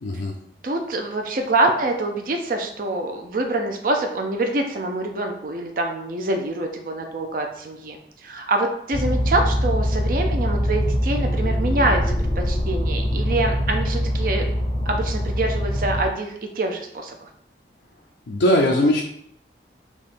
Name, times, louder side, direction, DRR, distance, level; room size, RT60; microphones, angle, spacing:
voice 1, 0.0-0.3 18.3-19.0, left 1 dB, 80° left, 0 dB, 0.5 m, -19 dB
voice 2, 0.6-14.5 14.9-17.3, right 2 dB, 50° right, 3 dB, 0.5 m, -25 dB
sound 1, 8.9-16.0, equal, 30° left, 0.5 m, -23 dB
3.6 x 2.9 x 4.2 m, 0.70 s
head